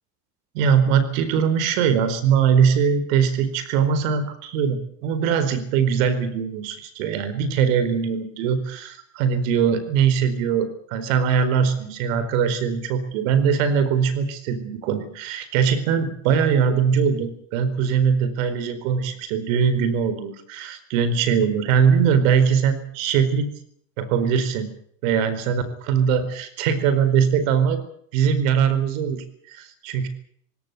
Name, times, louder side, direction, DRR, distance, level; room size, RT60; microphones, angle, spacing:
voice 1, 0.5-23.5 24.0-24.7 25.0-27.8 28.1-30.1, right 7 dB, 75° right, 12 dB, 4.5 m, -21 dB
20.0 x 17.5 x 9.3 m, 0.66 s
supercardioid pair, 110°, 40 cm